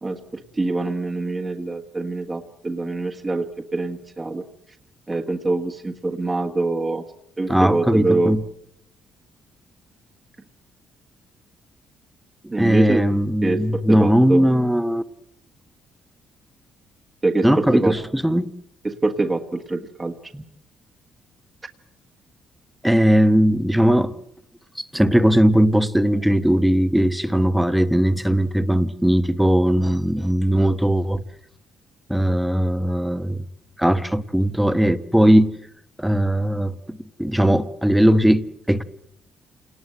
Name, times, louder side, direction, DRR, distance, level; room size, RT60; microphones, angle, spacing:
voice 1, 0.0-4.4 5.1-7.0 7.4-8.4 12.5-13.0 13.4-14.5 17.2-17.9 18.8-20.1, right 2 dB, 20° right, 1.5 m, -24 dB
voice 2, 7.5-8.4 12.6-15.0 17.4-18.5 20.3-20.4 22.8-24.1 24.8-31.2 32.1-33.4 33.8-35.5 36.0-38.8, equal, 5° right, 1.1 m, -19 dB
28.0 x 19.0 x 7.9 m
cardioid pair, 110°, 0 cm